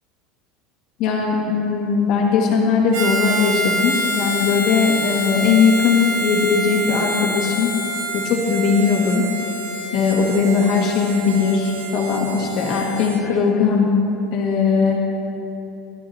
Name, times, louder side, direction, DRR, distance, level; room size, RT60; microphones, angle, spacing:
voice 1, 1.0-7.7 8.1-9.2 9.9-14.0 14.3-15.1, left 5 dB, 45° left, -1 dB, 1.7 m, -19 dB
Harmonica, 2.9-13.2, equal, 50° right, 1.4 m, -26 dB
13.5 x 12.5 x 2.8 m, 2.9 s
cardioid pair, 175°, 0 cm